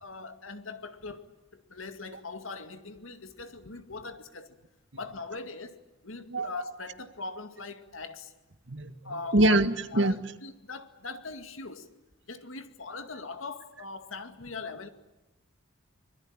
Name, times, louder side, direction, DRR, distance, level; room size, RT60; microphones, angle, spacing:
voice 1, 0.0-4.6 4.9-8.3 9.0-9.6 9.9-11.9 12.3-14.9, left 3 dB, 90° left, 2.1 m, -41 dB
voice 2, 8.7-10.2 14.6-14.8, right 1 dB, 60° right, 1.7 m, -25 dB
25.0 x 22.0 x 8.9 m
head